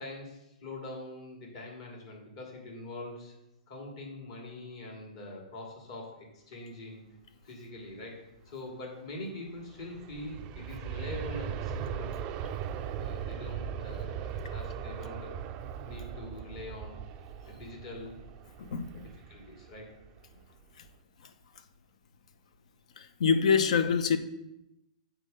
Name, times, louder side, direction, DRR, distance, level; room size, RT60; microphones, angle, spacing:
voice 1, 0.0-3.3 3.7-7.0 7.4-12.2 13.0-15.4 15.8-17.0 17.5-18.2 18.9-19.9, left 1 dB, 50° left, 2.4 m, -44 dB
Aircraft, 9.6-20.4 20.9-21.0, right 8 dB, 25° right, 0.4 m, -39 dB
voice 2, 23.0-24.2, left 6 dB, 65° left, 0.8 m, -25 dB
8.0 x 4.5 x 5.3 m
hypercardioid pair, 155°, 4 cm